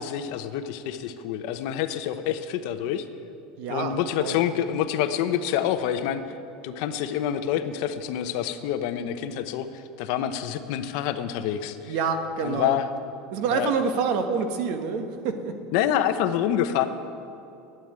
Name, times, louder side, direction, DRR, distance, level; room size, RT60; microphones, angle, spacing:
voice 1, 0.0-3.0 3.7-6.2 6.6-9.7 10.0-11.9 12.4-12.9 13.5-13.7 15.7-16.9, left 10 dB, 60° left, 10 dB, 0.8 m, -27 dB
voice 2, 3.6-4.4 11.9-12.8 13.3-15.5, right 5 dB, 50° right, 6 dB, 1.4 m, -27 dB
12.5 x 9.0 x 9.9 m, 2.7 s
supercardioid pair, 165°, 3 cm